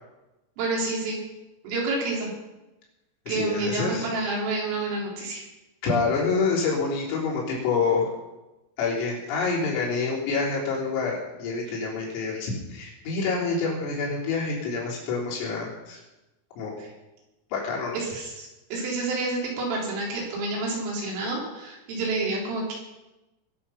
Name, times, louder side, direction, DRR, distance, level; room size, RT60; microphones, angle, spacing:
voice 1, 0.6-1.2 1.6-2.3 3.3-5.4 11.7-11.8 16.8-16.9 17.9-22.8, right 2 dB, 75° right, -3 dB, 5.9 m, -29 dB
voice 2, 3.3-4.1 5.8-8.1 8.8-16.0 16.6-16.7 17.5-18.0, left 4 dB, 80° left, -4 dB, 6.1 m, -27 dB
21.5 x 7.4 x 5.7 m, 1.0 s
omnidirectional pair, 5.9 m